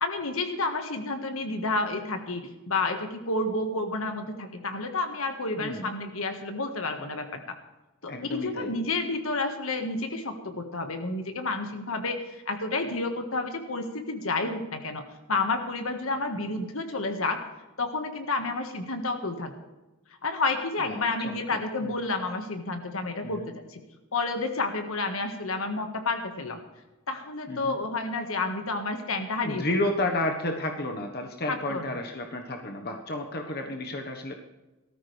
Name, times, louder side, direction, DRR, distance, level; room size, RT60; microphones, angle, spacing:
voice 1, 0.0-7.4 8.0-15.0 15.3-17.4 17.8-19.5 20.2-23.8 24.1-26.6 27.1-29.6 31.5-31.9, left 3 dB, 75° left, 6 dB, 1.7 m, -30 dB
voice 2, 5.6-5.9 8.0-8.7 20.9-21.9 23.2-23.5 27.5-27.8 29.4-34.3, left 1 dB, 45° left, 3 dB, 1.4 m, -32 dB
18.0 x 14.0 x 3.4 m, 1.1 s
head